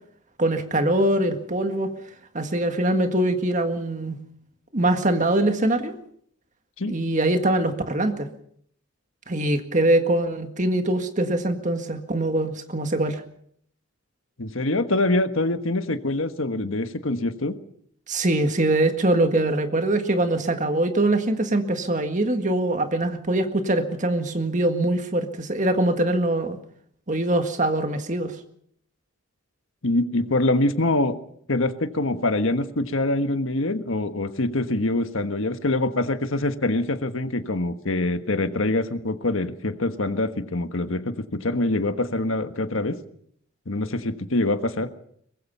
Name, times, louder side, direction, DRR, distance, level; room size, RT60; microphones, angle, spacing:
voice 1, 0.4-1.9 2.3-4.2 4.7-5.9 6.9-8.3 9.3-13.2 18.1-26.6 27.1-28.4, right 1 dB, 35° right, 7 dB, 1.8 m, -23 dB
voice 2, 14.4-17.6 29.8-31.2 31.5-43.0 43.7-44.9, left 2 dB, 70° left, 9 dB, 1.4 m, -24 dB
23.5 x 20.0 x 5.6 m, 0.67 s
head